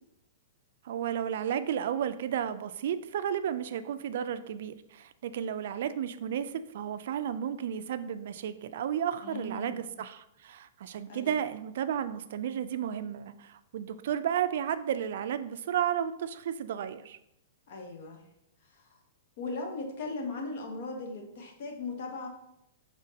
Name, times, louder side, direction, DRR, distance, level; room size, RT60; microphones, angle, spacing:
voice 1, 0.8-17.2, right 9 dB, 65° right, 12 dB, 0.3 m, -33 dB
voice 2, 9.2-10.0 11.1-11.4 17.7-18.2 18.7-18.9 19.4-22.3, left 3 dB, 55° left, 3 dB, 1.0 m, -38 dB
5.1 x 3.5 x 2.7 m, 0.81 s
hypercardioid pair, 150°, 0 cm